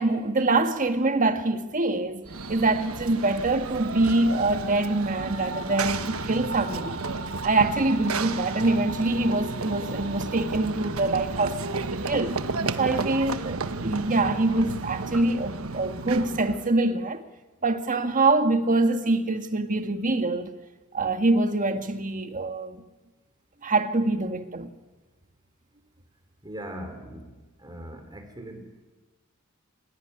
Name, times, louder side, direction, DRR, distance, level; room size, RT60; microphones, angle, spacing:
voice 1, 0.0-2.2 2.5-7.0 7.4-12.4 12.8-17.2 17.6-20.6 20.9-22.8 23.6-24.7, right 2 dB, 40° right, 1.7 m, -25 dB
Run / Train, 2.2-16.7, right 3 dB, 75° right, 1.2 m, -32 dB
voice 2, 26.4-27.3 27.6-28.8, right 1 dB, 20° right, 4.3 m, -40 dB
30.0 x 17.0 x 9.9 m
head